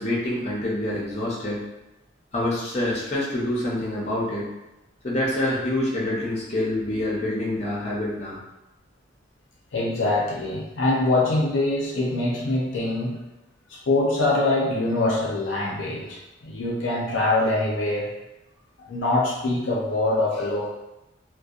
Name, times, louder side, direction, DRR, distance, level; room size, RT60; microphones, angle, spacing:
voice 1, 0.0-1.6 2.3-4.5 5.0-8.4, left 1 dB, 35° left, -5 dB, 0.6 m, -26 dB
voice 2, 9.7-13.2 13.7-18.1 18.9-20.7, left 2 dB, 85° left, -3 dB, 0.5 m, -24 dB
2.7 x 2.1 x 2.4 m, 0.97 s
head